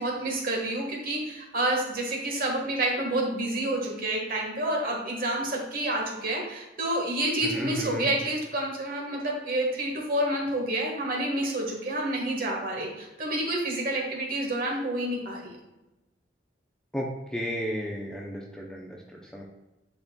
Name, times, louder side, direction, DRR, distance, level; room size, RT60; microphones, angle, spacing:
voice 1, 0.0-15.5, right 1 dB, 45° right, -1 dB, 1.6 m, -29 dB
voice 2, 7.4-8.1 16.9-19.4, equal, 5° left, -2 dB, 0.6 m, -34 dB
10.0 x 4.2 x 2.3 m, 1.0 s
head